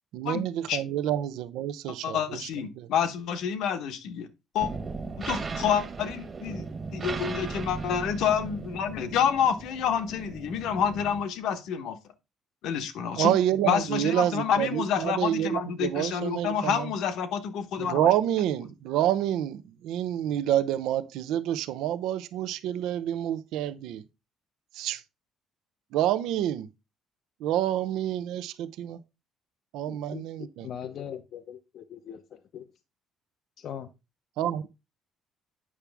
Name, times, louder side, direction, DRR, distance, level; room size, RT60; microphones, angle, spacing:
voice 1, 0.1-2.5 2.8-2.9 13.2-16.9 17.8-24.0 24.7-25.0 25.9-26.7 27.4-29.0 29.7-30.7 34.4-34.6, right 11 dB, 80° right, 0.6 m, -28 dB
voice 2, 2.0-4.3 4.5-4.7 5.2-6.6 6.9-12.0 12.6-13.3 13.6-18.1, left 8 dB, 70° left, 1.1 m, -28 dB
sound 1, 4.6-11.2, right 4 dB, 25° right, 1.3 m, -37 dB
voice 3, 29.9-32.7 33.6-33.9, left 9 dB, 50° left, 0.6 m, -41 dB
8.6 x 6.0 x 3.4 m
cardioid pair, 155°, 0 cm